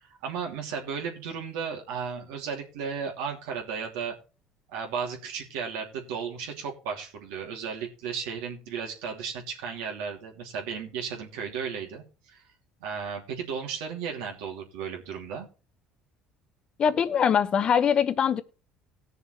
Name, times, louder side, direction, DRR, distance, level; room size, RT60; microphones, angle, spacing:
voice 1, 0.0-4.2 4.7-12.4 12.8-15.5, right 6 dB, 85° right, 2.9 m, -34 dB
voice 2, 16.8-18.4, left 7 dB, 45° left, 1.0 m, -22 dB
18.0 x 6.8 x 3.2 m
supercardioid pair, 90°, 2 cm